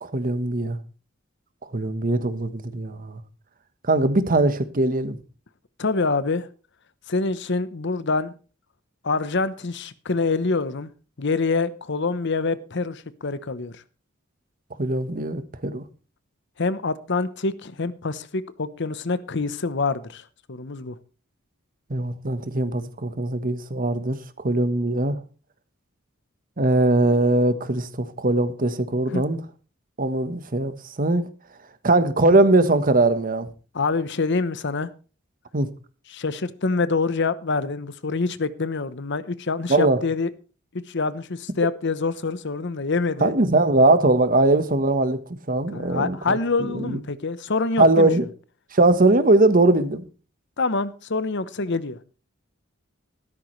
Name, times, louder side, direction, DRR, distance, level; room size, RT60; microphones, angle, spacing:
voice 1, 0.0-0.8 1.7-3.2 3.9-5.2 14.8-15.8 21.9-25.2 26.6-29.4 30.0-31.2 31.8-33.5 35.5-35.7 39.7-40.0 43.2-45.2 45.5-47.0 47.8-48.2 48.7-50.0, right 2 dB, 45° right, 1.2 m, -20 dB
voice 2, 5.8-6.5 7.1-8.3 9.0-10.9 11.2-13.7 16.6-20.2 20.5-21.0 29.1-29.2 33.7-34.9 36.1-40.3 40.9-43.3 45.7-48.1 50.6-52.0, left 3 dB, 60° left, 0.9 m, -26 dB
14.5 x 13.0 x 3.2 m
head